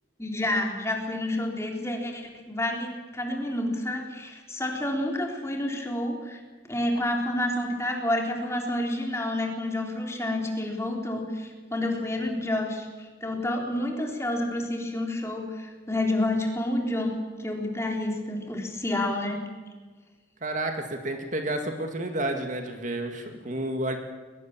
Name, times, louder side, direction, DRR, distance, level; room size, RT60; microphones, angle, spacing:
voice 1, 0.2-6.4 6.6-17.1 17.4-19.4, left 1 dB, 15° left, 1 dB, 3.7 m, -29 dB
voice 2, 20.4-24.0, right 1 dB, 40° right, 5 dB, 2.1 m, -30 dB
22.5 x 20.5 x 7.4 m, 1.4 s
head